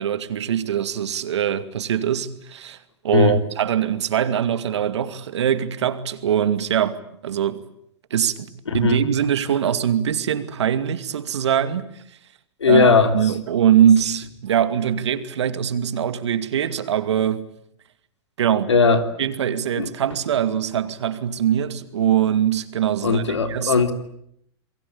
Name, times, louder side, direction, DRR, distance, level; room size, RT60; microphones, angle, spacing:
voice 1, 0.0-2.8 3.0-7.6 8.1-11.9 12.7-17.5 18.4-18.7 19.2-23.8, right 9 dB, 75° right, 2.4 m, -22 dB
voice 2, 8.7-9.0 12.6-13.1 18.7-19.0 19.8-19.9 23.0-23.9, left 5 dB, 90° left, 3.2 m, -17 dB
28.5 x 22.5 x 8.7 m
hypercardioid pair, 110°, 15 cm